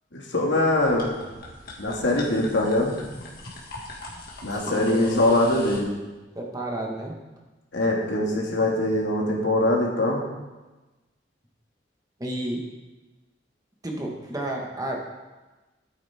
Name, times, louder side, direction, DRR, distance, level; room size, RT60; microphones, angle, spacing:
voice 1, 0.1-1.1 1.8-3.0 4.4-5.9 7.7-10.2, left 1 dB, 80° left, -2 dB, 2.2 m, -23 dB
sound 1, 0.8-5.8, left 2 dB, 55° left, 2.1 m, -40 dB
voice 2, 4.5-5.2 6.3-7.2 12.2-12.6 13.8-15.1, right 1 dB, 20° right, -1 dB, 1.5 m, -31 dB
13.5 x 8.8 x 3.6 m, 1.1 s
head